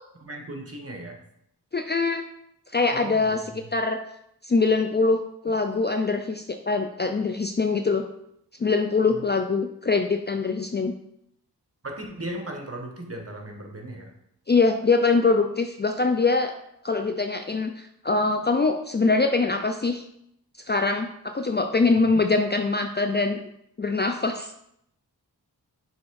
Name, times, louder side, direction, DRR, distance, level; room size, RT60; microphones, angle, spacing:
voice 1, 0.2-1.2 2.9-3.4 9.1-9.2 11.8-14.1 21.9-22.2, right 1 dB, 35° right, 2 dB, 1.4 m, -37 dB
voice 2, 1.7-2.2 2.7-4.0 4.4-8.0 8.6-10.9 14.5-16.5 16.8-20.0 20.7-23.4 23.8-24.5, left 3 dB, 25° left, 6 dB, 0.5 m, -23 dB
6.2 x 3.4 x 4.8 m, 0.76 s
cardioid pair, 40°, 40 cm